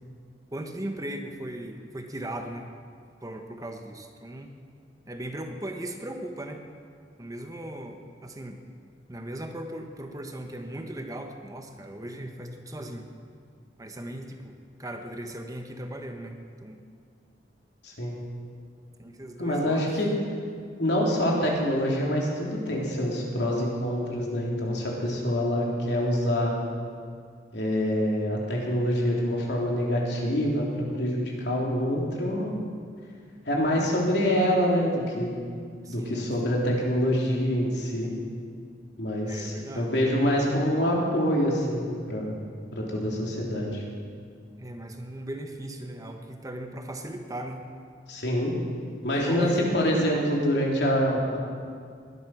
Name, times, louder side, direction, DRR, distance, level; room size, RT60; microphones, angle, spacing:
voice 1, 0.5-2.7 3.2-4.5 5.1-6.6 7.2-8.6 9.1-13.1 13.8-16.8 19.0-19.8 33.7-34.2 35.8-36.6 39.2-39.9 44.6-47.6 49.1-49.6, right 1 dB, 20° right, 4 dB, 1.1 m, -38 dB
voice 2, 17.8-18.2 19.4-20.1 20.8-26.5 27.5-32.5 33.5-35.3 35.9-38.1 39.0-42.3 42.7-43.8 48.1-48.5 49.0-51.4, equal, 65° left, -2 dB, 3.5 m, -26 dB
20.5 x 11.0 x 6.1 m, 2.1 s
head